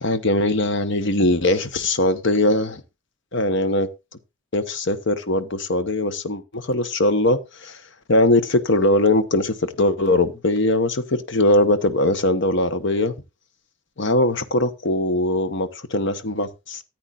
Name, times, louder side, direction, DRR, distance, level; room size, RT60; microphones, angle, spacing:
voice 1, 0.0-2.8 3.3-3.9 4.5-7.8 8.1-13.1 14.0-16.8, left 2 dB, 60° left, 1.0 m, -21 dB
14.0 x 8.9 x 2.4 m
head